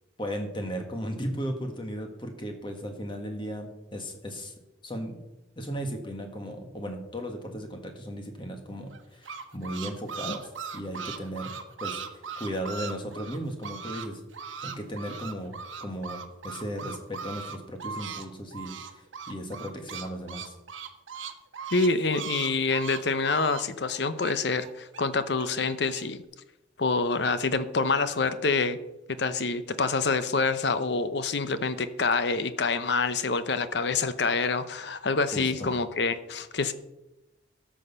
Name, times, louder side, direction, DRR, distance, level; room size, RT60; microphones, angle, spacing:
voice 1, 0.2-4.5 4.8-5.2 5.6-11.5 11.8-12.0 12.4-14.2 14.6-18.8 19.3-20.5 35.3-35.7, equal, 25° left, 4 dB, 1.6 m, -36 dB
sound 1, 8.9-14.1 14.3-18.3 18.5-25.0 25.4-26.0, right 6 dB, 90° right, 1.0 m, -39 dB
voice 2, 21.7-26.2 26.8-28.8 29.1-36.7, left 4 dB, 60° left, 12 dB, 0.7 m, -26 dB
13.0 x 6.5 x 5.5 m, 0.95 s
head